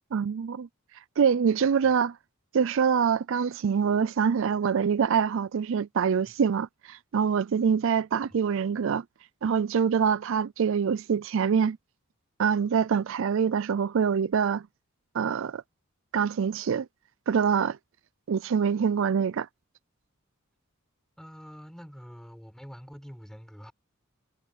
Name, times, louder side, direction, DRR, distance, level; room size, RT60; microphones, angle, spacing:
voice 1, 0.1-0.7 1.2-2.2 2.5-9.0 9.4-11.8 12.4-14.6 15.1-15.6 16.1-16.9 17.3-17.8 18.3-19.5, right 7 dB, 65° right, 0.4 m, -25 dB
voice 2, 21.2-23.7, equal, 5° left, 7.2 m, -46 dB
head